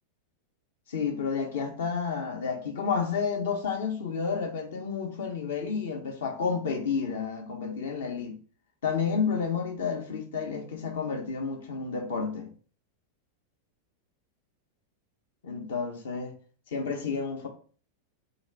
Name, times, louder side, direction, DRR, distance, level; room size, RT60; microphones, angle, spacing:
voice 1, 0.9-8.4 8.8-12.5 15.4-16.3 16.7-17.5, left 5 dB, 60° left, 0.9 m, -30 dB
2.9 x 2.5 x 4.3 m
figure-of-eight pair, 90°, 0 cm